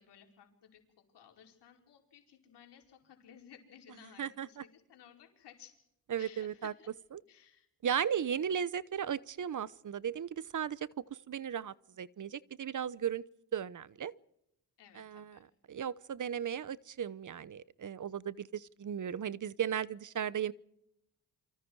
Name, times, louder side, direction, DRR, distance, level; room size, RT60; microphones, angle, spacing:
voice 1, 0.0-5.8 6.2-7.0 7.3-7.7 14.8-15.4, left 9 dB, 85° left, 5.0 m, -57 dB
voice 2, 4.2-4.6 6.1-6.7 7.1-7.2 7.8-13.2 13.5-14.1 14.9-15.4 15.7-20.5, right 8 dB, 50° right, 0.9 m, -36 dB
28.5 x 24.5 x 4.8 m
cardioid pair, 75°, 40 cm